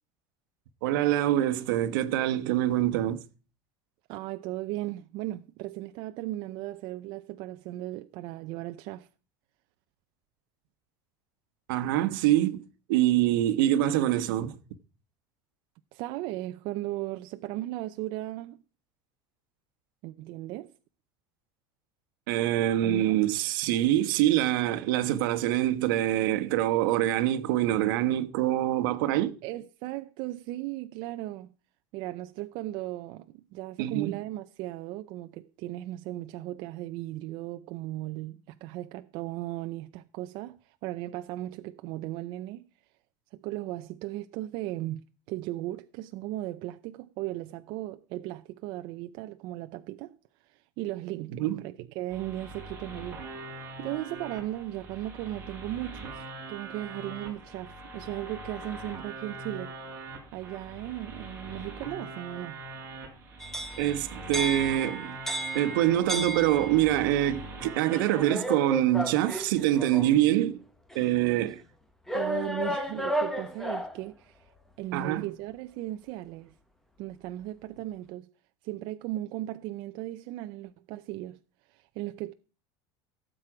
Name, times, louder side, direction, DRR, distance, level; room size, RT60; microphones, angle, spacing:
voice 1, 0.8-3.2 11.7-12.6 12.9-14.5 22.3-29.3 33.8-34.1 51.3-51.6 63.8-65.2 65.5-70.6 70.9-71.6 74.9-75.2, right 13 dB, 75° right, 1.2 m, -25 dB
voice 2, 4.1-9.1 15.9-18.6 20.0-20.7 22.8-23.2 29.4-31.5 31.9-42.6 43.3-50.2 50.5-53.2 53.8-59.8 60.3-62.6 71.3-71.4 72.1-74.5 74.8-76.5 77.0-78.3 78.6-81.4 81.7-82.3, right 16 dB, 45° right, 0.5 m, -37 dB
sound 1, 52.1-68.3, right 2 dB, 20° right, 4.2 m, -42 dB
sound 2, 63.4-67.0 67.9-70.2 70.9-71.0 72.1-74.0, right 1 dB, 5° left, 1.0 m, -33 dB
17.0 x 7.5 x 4.9 m
cardioid pair, 170°, 11 cm